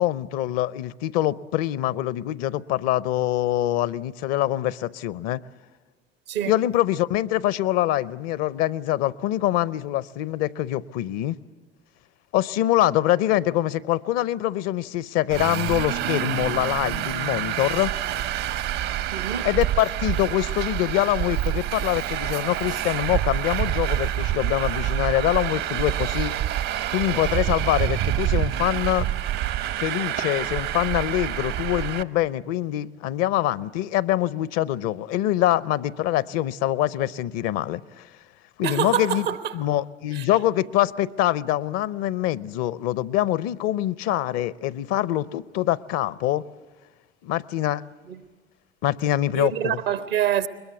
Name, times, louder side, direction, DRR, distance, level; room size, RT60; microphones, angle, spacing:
voice 1, 0.0-5.4 6.4-11.4 12.3-17.9 19.4-26.3 26.9-29.1 29.8-38.1 38.6-39.3 39.5-46.4 47.2-47.8 48.8-49.8, left 14 dB, 60° left, 0.6 m, -24 dB
Traffic noise roadway noise, 15.3-32.0, right 12 dB, 60° right, 0.9 m, -27 dB
voice 2, 19.1-19.6 38.6-39.5 40.1-40.3 48.1-48.2 49.3-50.5, right 10 dB, 80° right, 1.1 m, -26 dB
21.5 x 21.0 x 8.2 m
figure-of-eight pair, 60°, 29 cm